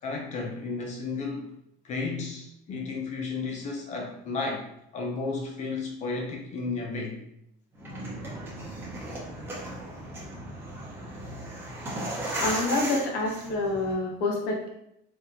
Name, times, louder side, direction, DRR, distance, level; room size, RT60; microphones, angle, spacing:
voice 1, 0.0-1.5 1.8-4.7 4.9-7.2, left 3 dB, 35° left, 1 dB, 0.6 m, -33 dB
sound 1, 7.8-13.9, right 1 dB, 10° right, 1.0 m, -36 dB
voice 2, 12.4-14.7, left 2 dB, 60° left, -1 dB, 1.0 m, -27 dB
4.5 x 3.8 x 2.7 m, 0.77 s
cardioid pair, 175°, 20 cm